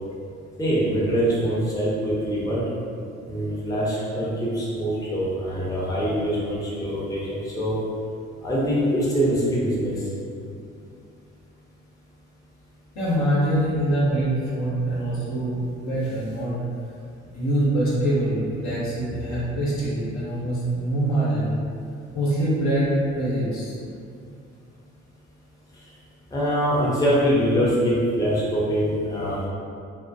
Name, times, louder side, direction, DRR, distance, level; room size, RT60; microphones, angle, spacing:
voice 1, 0.6-2.6 3.3-7.8 8.4-9.9 26.3-29.5, equal, 10° left, -7 dB, 0.7 m, -23 dB
voice 2, 12.9-16.5 17.3-21.5 22.1-23.8, right 1 dB, 60° left, -8 dB, 0.9 m, -24 dB
2.2 x 2.1 x 2.6 m, 2.4 s
hypercardioid pair, 45°, 34 cm